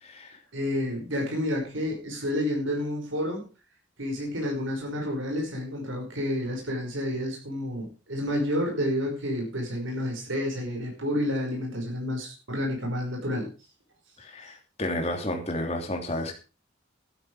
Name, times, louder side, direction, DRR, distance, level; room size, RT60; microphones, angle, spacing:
voice 1, 0.0-0.4 14.2-16.3, left 1 dB, 30° left, 3 dB, 2.9 m, -31 dB
voice 2, 0.5-3.4 4.0-13.5, left 1 dB, 85° right, 1 dB, 5.6 m, -30 dB
12.5 x 12.5 x 4.9 m, 0.34 s
head